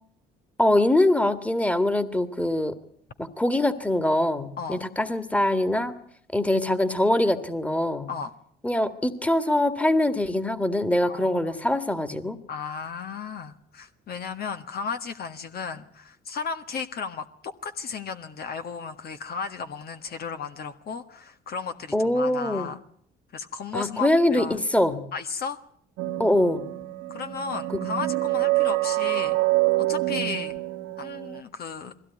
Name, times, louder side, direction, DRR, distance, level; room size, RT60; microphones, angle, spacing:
voice 1, 0.6-2.7 3.2-5.9 6.3-8.1 8.6-12.4 21.9-22.7 23.7-25.0 26.2-26.6, left 1 dB, 5° left, 10 dB, 2.1 m, -23 dB
voice 2, 4.6-4.9 8.1-8.3 11.0-11.8 12.5-22.8 23.3-24.6 25.1-25.6 27.1-29.4 29.9-30.6 31.0-31.9, left 5 dB, 50° left, 7 dB, 1.6 m, -34 dB
sound 1, 26.0-31.4, right 19 dB, 75° right, 1.7 m, -26 dB
21.0 x 16.5 x 9.5 m, 0.63 s
supercardioid pair, 75°, 20 cm